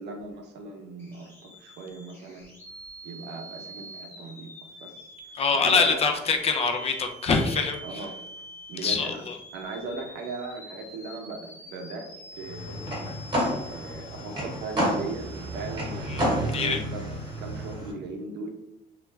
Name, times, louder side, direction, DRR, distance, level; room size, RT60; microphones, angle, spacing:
voice 1, 0.0-2.5 3.0-4.5 4.8-5.1 5.5-6.0 7.8-8.1 8.7-9.2 9.5-12.1 12.4-12.8 13.7-17.1 17.4-18.5, right 3 dB, 80° right, 3 dB, 0.6 m, -38 dB
sound 1, 1.0-17.7, equal, 15° left, 0.7 m, -46 dB
voice 2, 5.3-8.1 8.8-9.4 16.1-16.2 16.5-16.8, left 5 dB, 35° left, 4 dB, 0.4 m, -25 dB
sound 2, 12.4-17.9, equal, 25° right, 1.2 m, -30 dB
2.4 x 2.1 x 3.1 m, 0.82 s
cardioid pair, 110°, 17 cm